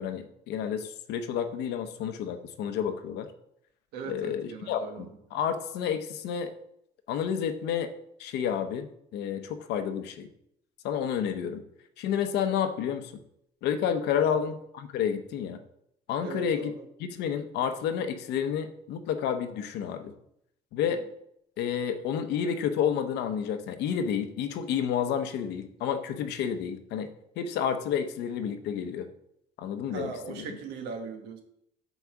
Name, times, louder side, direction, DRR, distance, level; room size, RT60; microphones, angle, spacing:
voice 1, 0.0-3.3 4.1-6.5 7.1-7.9 8.2-10.3 10.8-11.6 12.0-13.1 13.6-15.6 16.1-16.7 17.0-20.1 20.7-21.0 21.6-27.1 27.4-29.1 29.6-30.6, left 8 dB, 80° left, 9 dB, 0.8 m, -30 dB
voice 2, 3.9-5.1 14.2-14.4 16.2-16.8 29.9-31.4, right 5 dB, 85° right, 5 dB, 1.3 m, -39 dB
8.2 x 4.0 x 6.0 m, 0.76 s
cardioid pair, 110°, 17 cm